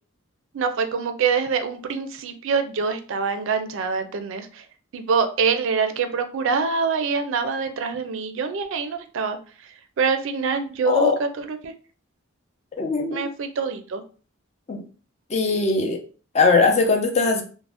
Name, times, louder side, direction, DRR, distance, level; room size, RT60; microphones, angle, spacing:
voice 1, 0.5-4.6 4.9-9.4 10.0-11.7 13.1-14.0, right 5 dB, 65° right, 8 dB, 0.4 m, -25 dB
voice 2, 10.8-11.2 12.8-13.2 14.7-14.8 15.3-16.0 16.3-17.4, left 4 dB, 35° left, 4 dB, 0.4 m, -20 dB
2.5 x 2.1 x 3.3 m, 0.39 s
head